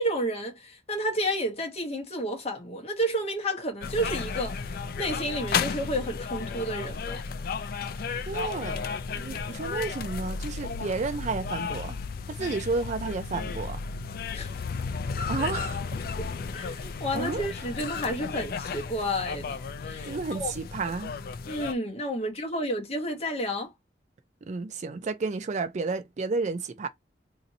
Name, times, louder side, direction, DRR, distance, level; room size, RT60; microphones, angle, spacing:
voice 1, 0.0-4.6 5.0-7.2 14.3-14.5 16.5-20.5 21.5-23.7, equal, 35° left, 1.0 m, -31 dB
sound 1, 3.8-21.7, left 5 dB, 55° left, 0.4 m, -33 dB
voice 2, 8.3-8.8 9.1-12.0 12.3-13.8 15.3-15.8 17.1-17.4 20.1-21.2 24.4-26.9, right 4 dB, 40° right, 0.4 m, -31 dB
2.8 x 2.6 x 3.9 m
head